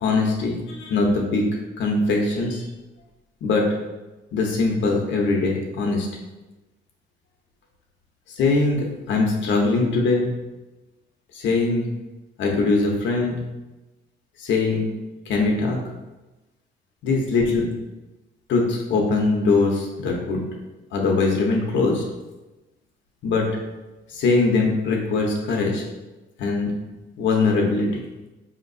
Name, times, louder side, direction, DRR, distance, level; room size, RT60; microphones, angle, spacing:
voice 1, 0.0-1.5 1.8-2.7 3.4-3.7 4.3-6.1 8.4-10.3 11.3-11.9 12.4-13.3 14.4-14.9 15.3-15.8 17.0-17.7 18.5-20.4 20.9-22.0 23.2-23.5 24.1-25.8 26.4-26.7 27.2-28.0, left 3 dB, 90° left, 0 dB, 0.8 m, -21 dB
5.1 x 2.9 x 2.6 m, 1.1 s
cardioid pair, 145°, 19 cm